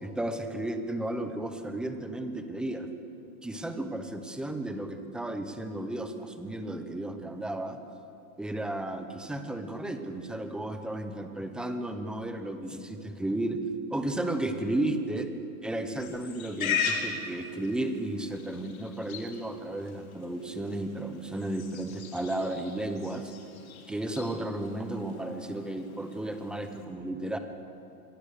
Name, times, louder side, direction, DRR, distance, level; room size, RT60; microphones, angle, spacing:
voice 1, 0.0-2.9 3.4-7.8 8.4-13.6 13.9-15.3 15.6-23.3 23.9-27.4, right 1 dB, ahead, 7 dB, 0.7 m, -33 dB
Livestock farm animals working animals, 16.0-26.9, left 6 dB, 65° left, 4.6 m, -38 dB
26.5 x 24.0 x 6.8 m, 2.7 s
hypercardioid pair, 155°, 45 cm